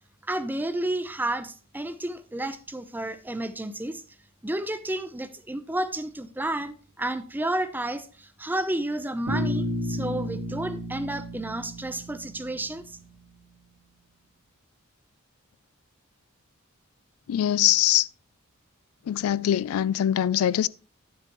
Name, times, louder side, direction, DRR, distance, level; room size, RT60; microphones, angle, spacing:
voice 1, 0.3-4.0 4.4-8.1 8.4-12.8, right 1 dB, 10° right, 0.6 m, -31 dB
Bass guitar, 9.3-13.3, equal, 85° right, 2.2 m, -32 dB
voice 2, 17.3-18.1 19.1-20.7, left 11 dB, 85° left, 0.3 m, -23 dB
10.0 x 7.6 x 3.1 m
head